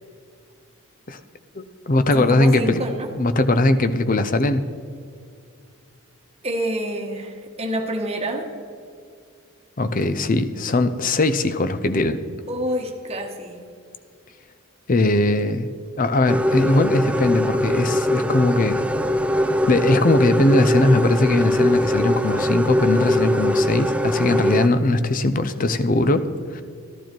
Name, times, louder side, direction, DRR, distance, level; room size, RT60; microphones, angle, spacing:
voice 1, 1.6-2.8 3.2-4.6 9.8-12.2 14.9-15.7 16.0-18.8 19.7-26.3 26.5-26.6, left 2 dB, 40° left, 11 dB, 0.6 m, -20 dB
voice 2, 2.1-3.1 6.4-8.5 12.5-13.6, equal, 30° right, 3 dB, 1.3 m, -27 dB
sound 1, 16.3-24.7, equal, 5° right, 0.4 m, -22 dB
13.5 x 12.0 x 4.5 m, 2.3 s
head